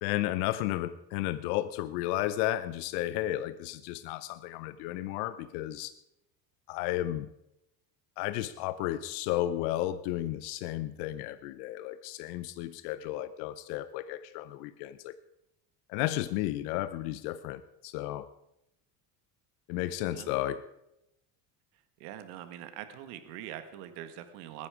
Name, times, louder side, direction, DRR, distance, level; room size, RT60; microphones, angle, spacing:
voice 1, 0.0-5.9 6.7-7.3 8.2-15.2 15.9-18.3 19.7-20.6, left 14 dB, 90° left, 0.8 m, -33 dB
voice 2, 22.0-24.7, right 11 dB, 85° right, 1.8 m, -43 dB
20.5 x 9.8 x 4.9 m
supercardioid pair, 105°, 44 cm